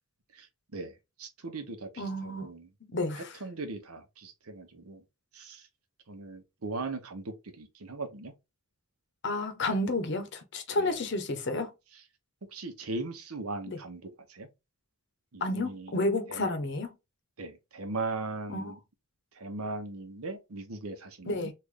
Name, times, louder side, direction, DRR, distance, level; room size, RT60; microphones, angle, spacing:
voice 1, 0.3-2.7 3.2-5.0 5.3-5.7 6.1-8.3 10.7-11.1 11.9-12.0 12.5-14.5 15.3-15.9 16.3-16.5 17.4-18.8 19.3-21.5, right 3 dB, 85° right, 0.9 m, -39 dB
voice 2, 2.0-2.5 2.9-3.3 9.2-11.7 13.7-13.8 15.4-16.9 18.5-18.6 21.3-21.5, left 2 dB, 55° left, 0.7 m, -31 dB
3.2 x 2.5 x 3.6 m
head